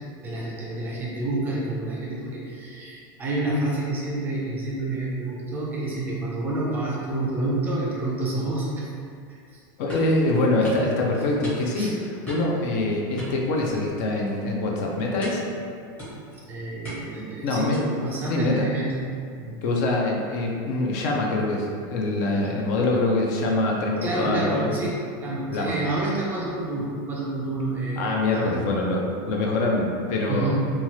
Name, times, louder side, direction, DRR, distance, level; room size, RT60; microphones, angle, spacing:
voice 1, 0.2-8.9 9.3-9.6 11.8-11.9 16.5-19.0 19.4-19.6 24.0-28.5 30.3-30.6, right 2 dB, 15° right, -5 dB, 0.3 m, -29 dB
voice 2, 9.8-12.0 12.3-15.4 17.4-17.8 18.3-18.7 19.6-24.7 25.5-25.8 28.0-30.6, left 2 dB, 50° left, -1 dB, 0.4 m, -24 dB
sound 1, 9.9-10.2 10.6-10.9 11.4-11.9 12.3-12.6 13.2-13.9 14.3-14.5 15.2-15.5 16.0-16.4 16.8-17.2 17.7-18.0, right 1 dB, 10° left, 0.8 m, -37 dB
2.8 x 2.3 x 2.9 m, 2.3 s
supercardioid pair, 175°, 12 cm